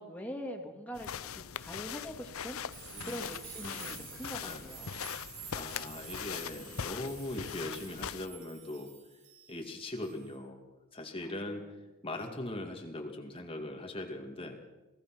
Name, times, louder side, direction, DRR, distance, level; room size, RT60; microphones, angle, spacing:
voice 1, 0.0-5.0 11.2-11.7, equal, 5° left, 2 dB, 2.5 m, -44 dB
sound 1, 0.9-8.3, left 8 dB, 70° left, 0.7 m, -41 dB
sound 2, 2.4-9.7 10.0-10.4, right 8 dB, 60° right, 5.8 m, -49 dB
voice 2, 2.9-3.3 3.6-4.0 4.4-4.6 5.5-8.9 9.5-10.6 10.9-11.6 12.0-14.6, left 1 dB, 25° left, 3 dB, 2.2 m, -40 dB
28.5 x 18.5 x 6.1 m, 1.1 s
head